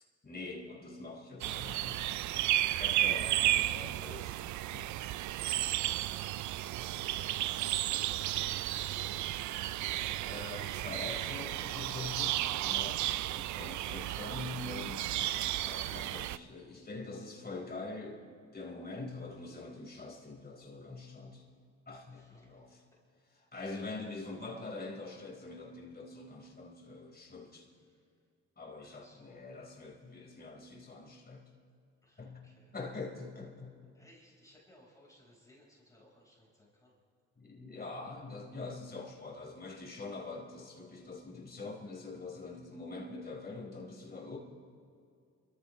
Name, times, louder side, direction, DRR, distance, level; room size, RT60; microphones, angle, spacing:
voice 1, 0.0-2.1 2.8-4.4 4.7-5.0 10.3-18.2 18.5-21.4 21.9-22.8 23.3-27.7 28.6-31.4 32.2-32.4 32.7-33.8 37.4-44.4, left 3 dB, 30° left, -2 dB, 4.3 m, -44 dB
sound 1, 1.4-16.4, right 14 dB, 70° right, 0.5 m, -33 dB
voice 2, 6.5-7.4 7.7-10.0 13.1-13.2 22.1-22.6 28.8-29.4 32.0-32.7 33.9-36.9, left 1 dB, 10° left, -4 dB, 4.6 m, -62 dB
27.5 x 14.5 x 3.1 m, 2.3 s
cardioid pair, 90°, 30 cm